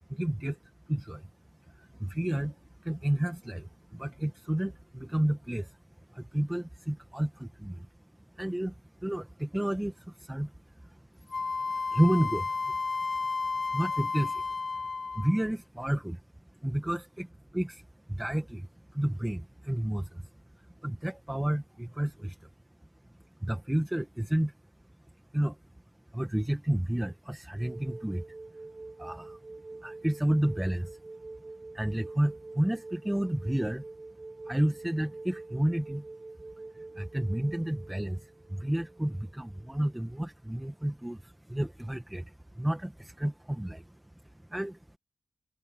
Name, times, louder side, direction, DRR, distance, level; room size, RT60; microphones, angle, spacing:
voice 1, 0.1-0.6 0.9-1.3 1.7-5.8 6.1-7.9 8.3-11.5 11.9-12.8 13.5-14.5 15.1-16.2 16.6-20.2 20.6-22.5 23.4-24.5 25.3-25.6 26.1-28.2 29.0-29.4 29.8-31.0 31.7-33.8 34.5-36.1 36.7-44.0 44.2-44.8, right 1 dB, 10° right, 1.9 m, -31 dB
Wind instrument woodwind instrument, 11.3-15.4, left 4 dB, 55° left, 0.3 m, -32 dB
sound 1, 27.6-40.0 41.8-41.9, right 3 dB, 45° right, 6.5 m, -46 dB
cardioid pair, 50°, 0 cm